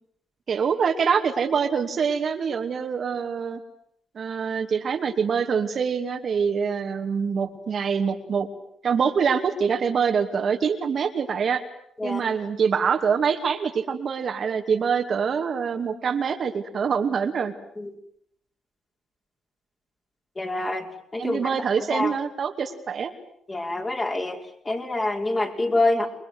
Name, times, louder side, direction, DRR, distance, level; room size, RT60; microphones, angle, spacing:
voice 1, 0.5-3.6 4.1-8.5 8.8-11.6 12.0-17.5 21.2-23.1, right 6 dB, 50° right, 5 dB, 2.5 m, -25 dB
voice 2, 20.4-20.9 21.1-21.5 21.8-22.1 23.5-26.1, left 2 dB, 25° left, 2 dB, 5.5 m, -26 dB
29.0 x 22.5 x 7.9 m, 0.69 s
cardioid pair, 90°, 0 cm